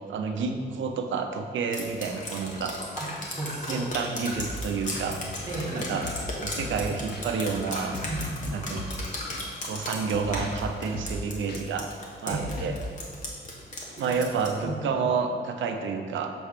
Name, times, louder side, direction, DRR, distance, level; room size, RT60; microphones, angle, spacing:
voice 1, 0.1-2.8 3.7-5.2 5.7-6.0 6.4-8.0 8.5-8.8 9.6-11.9 12.2-12.7 14.0-16.3, right 5 dB, 85° right, 5 dB, 0.6 m, -29 dB
Drip, 1.7-14.6, left 1 dB, 40° left, 1.2 m, -36 dB
voice 2, 3.0-4.0 5.5-5.9 8.0-8.5 12.3-12.5 14.0-14.2 14.6-14.9, right 2 dB, 20° right, -4 dB, 1.2 m, -34 dB
sound 1, 4.4-4.7 4.9-5.1 6.0-6.3 6.6-6.9 7.1-7.2 7.9-8.5 8.8-9.0 9.3-9.4 10.1-10.7 10.9-11.2 11.5-11.6 12.3-12.9, left 1 dB, 55° left, 0.8 m, -37 dB
6.8 x 3.3 x 5.8 m, 2.1 s
wide cardioid pair, 155°, 19 cm